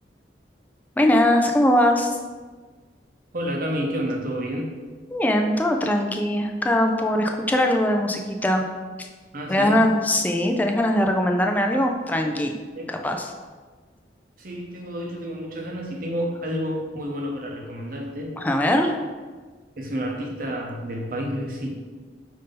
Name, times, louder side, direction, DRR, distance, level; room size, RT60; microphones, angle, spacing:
voice 1, 1.0-2.1 5.1-8.6 9.5-12.6 12.9-13.3 18.4-18.9, left 1 dB, 10° left, 3 dB, 0.3 m, -21 dB
voice 2, 3.3-4.7 9.3-9.8 12.8-12.9 14.4-18.3 19.8-21.7, equal, 55° right, 0 dB, 0.7 m, -30 dB
5.2 x 2.7 x 3.7 m, 1.4 s
head